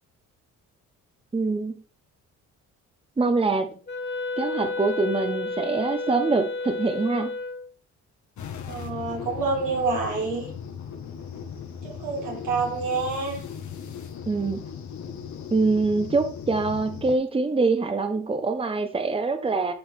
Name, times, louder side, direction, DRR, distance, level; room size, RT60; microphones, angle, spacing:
voice 1, 1.3-1.7 3.2-3.8 4.4-7.4 14.3-14.6 15.5-19.7, right 3 dB, 20° right, 1.0 m, -24 dB
Wind instrument woodwind instrument, 3.9-7.7, left 3 dB, 35° left, 2.2 m, -31 dB
sound 1, 8.4-17.2, left 7 dB, 70° left, 1.7 m, -38 dB
voice 2, 8.7-10.5 11.8-13.4, right 4 dB, 90° right, 3.8 m, -27 dB
11.5 x 4.7 x 3.7 m
cardioid pair, 90°, 30 cm